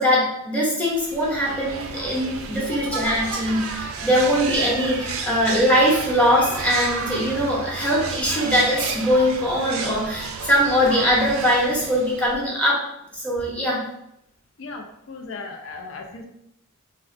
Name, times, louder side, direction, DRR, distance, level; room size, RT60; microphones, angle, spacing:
voice 1, 0.0-12.9 13.2-13.8, equal, 5° left, -5 dB, 0.7 m, -21 dB
sound 1, 0.9-12.6, right 4 dB, 70° right, 0.4 m, -32 dB
voice 2, 14.6-16.3, left 3 dB, 60° left, 3 dB, 0.4 m, -36 dB
3.6 x 2.1 x 2.5 m, 0.79 s
head